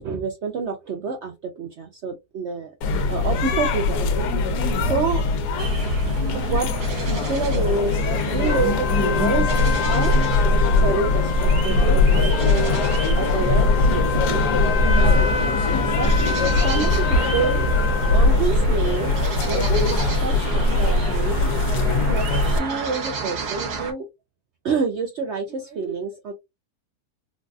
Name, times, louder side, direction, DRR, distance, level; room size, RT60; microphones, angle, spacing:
voice 1, 0.0-2.7 3.1-5.3 6.3-6.7 7.0-9.6 9.9-10.2 10.8-12.8 13.2-14.4 14.7-14.8 15.9-16.1 16.5-17.6 18.1-19.1 19.4-21.7 22.1-24.1 24.6-26.3, right 4 dB, 65° right, 0.7 m, -28 dB
sound 1, 2.8-22.6, left 2 dB, 90° left, 1.3 m, -20 dB
sound 2, 5.6-23.9, right 5 dB, 90° right, 1.5 m, -33 dB
sound 3, 8.5-18.4, left 6 dB, 60° left, 1.0 m, -29 dB
3.9 x 2.3 x 2.4 m
omnidirectional pair, 1.7 m